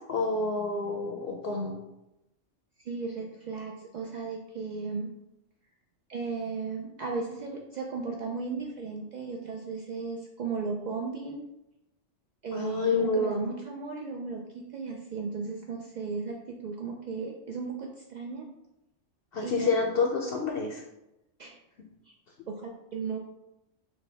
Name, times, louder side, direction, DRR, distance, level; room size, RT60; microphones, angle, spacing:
voice 1, 0.1-1.8 12.5-13.4 19.3-20.8, left 3 dB, 60° left, 1 dB, 0.7 m, -28 dB
voice 2, 2.8-5.1 6.1-11.4 12.4-18.5 19.4-19.7 21.4-21.5 22.1-22.2 22.5-23.2, right 4 dB, 80° right, 0 dB, 0.4 m, -35 dB
6.3 x 2.2 x 3.3 m, 0.90 s
omnidirectional pair, 1.3 m